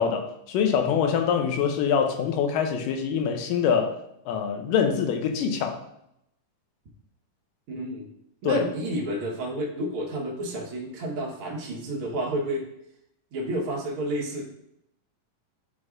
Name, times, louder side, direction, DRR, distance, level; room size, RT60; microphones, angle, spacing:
voice 1, 0.0-4.0 4.3-5.8 8.5-8.6, left 7 dB, 85° left, 2.2 m, -24 dB
voice 2, 7.7-8.1 8.4-12.7 13.3-14.4, right 1 dB, 55° right, 1.6 m, -30 dB
9.4 x 4.1 x 2.5 m
omnidirectional pair, 3.9 m